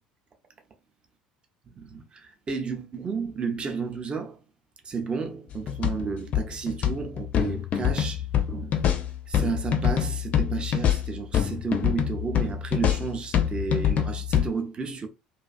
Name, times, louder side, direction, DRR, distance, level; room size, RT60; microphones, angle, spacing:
voice 1, 1.8-4.4 4.8-8.8 9.3-15.1, right 5 dB, 25° right, 0.5 m, -32 dB
sound 1, 5.5-14.5, left 9 dB, 40° left, 0.4 m, -26 dB
2.5 x 2.4 x 2.3 m
figure-of-eight pair, 60°, 4 cm